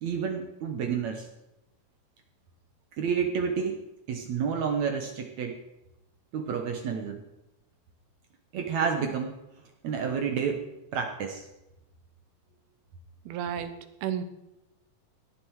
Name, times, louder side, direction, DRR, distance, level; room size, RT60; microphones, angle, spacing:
voice 1, 0.0-1.3 3.0-5.6 6.3-7.2 8.5-9.4 9.8-10.6 10.9-11.5, right 6 dB, 65° right, 4 dB, 2.0 m, -30 dB
voice 2, 13.3-14.2, right 9 dB, 90° right, 11 dB, 3.0 m, -33 dB
17.5 x 11.0 x 4.7 m, 0.92 s
omnidirectional pair, 4.3 m